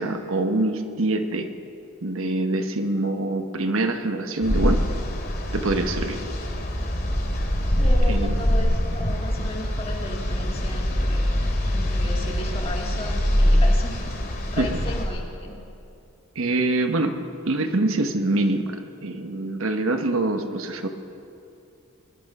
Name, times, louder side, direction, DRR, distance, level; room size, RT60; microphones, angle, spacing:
voice 1, 0.0-1.5 2.0-4.8 5.5-6.2 8.1-8.3 14.6-14.7 16.4-17.2 17.5-20.9, right 2 dB, 70° right, 6 dB, 1.1 m, -24 dB
sound 1, 4.4-15.0, equal, 45° left, 2.9 m, -23 dB
voice 2, 7.8-14.1 14.5-15.6, left 1 dB, 25° left, 0 dB, 1.8 m, -35 dB
22.0 x 11.0 x 5.4 m, 2.7 s
head